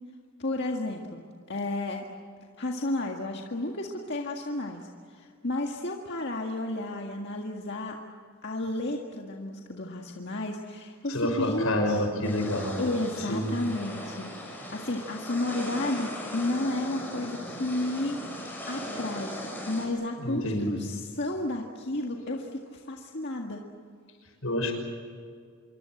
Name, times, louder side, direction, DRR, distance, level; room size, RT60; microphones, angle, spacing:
voice 1, 0.4-2.1 2.6-8.0 8.4-12.0 12.8-18.2 18.7-19.3 19.7-23.6, left 2 dB, 55° left, 1 dB, 1.8 m, -32 dB
voice 2, 11.1-12.8 13.2-13.6 20.2-20.8 24.4-24.7, left 1 dB, 80° left, 4 dB, 6.2 m, -28 dB
sound 1, 12.2-19.9, left 1 dB, 10° left, 6.6 m, -38 dB
26.5 x 23.5 x 7.9 m, 2.2 s
head